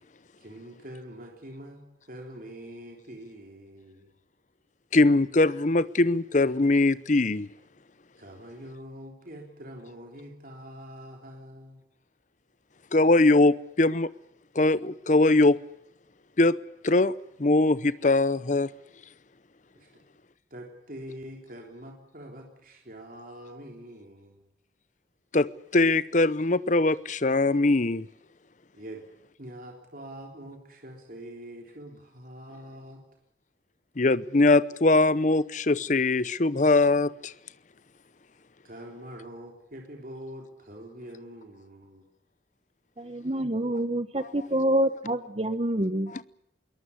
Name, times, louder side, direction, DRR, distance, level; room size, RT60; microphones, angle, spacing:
voice 1, 0.4-4.1 8.2-11.8 19.7-20.0 20.5-24.4 28.7-29.0 29.4-33.0 38.6-42.0, equal, 50° right, 2 dB, 3.5 m, -44 dB
voice 2, 4.9-7.5 12.9-14.1 14.6-15.6 16.4-16.5 16.8-17.1 17.4-18.7 25.3-28.0 34.0-37.3 46.1-46.2, left 2 dB, 40° left, 17 dB, 0.8 m, -21 dB
voice 3, 43.0-46.1, right 1 dB, 30° right, 11 dB, 1.0 m, -27 dB
22.5 x 19.0 x 8.3 m, 0.79 s
head